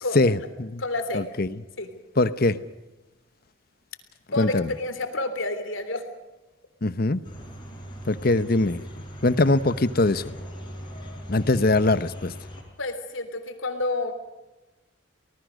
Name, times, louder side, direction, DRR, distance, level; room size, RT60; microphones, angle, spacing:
voice 1, 0.1-0.8 1.1-1.6 2.2-2.6 4.4-4.7 6.8-7.2 8.1-8.8 9.2-10.3 11.3-12.3, left 2 dB, 50° left, 14 dB, 1.0 m, -22 dB
voice 2, 0.8-1.3 1.8-1.9 4.3-6.1 8.4-8.5 8.8-8.9 12.8-14.1, left 2 dB, 80° left, 8 dB, 3.3 m, -29 dB
sound 1, 7.2-12.6, equal, 25° left, 6.0 m, -40 dB
25.5 x 19.5 x 6.4 m, 1.1 s
head